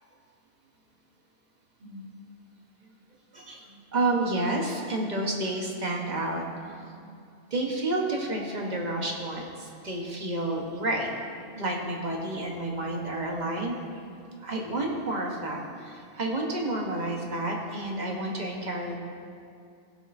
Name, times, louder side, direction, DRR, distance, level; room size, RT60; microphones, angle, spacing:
voice 1, 3.3-7.1 7.5-11.2 11.6-13.8 14.4-19.0, right 2 dB, 35° right, 0 dB, 1.0 m, -30 dB
16.0 x 6.3 x 2.6 m, 2.4 s
omnidirectional pair, 1.5 m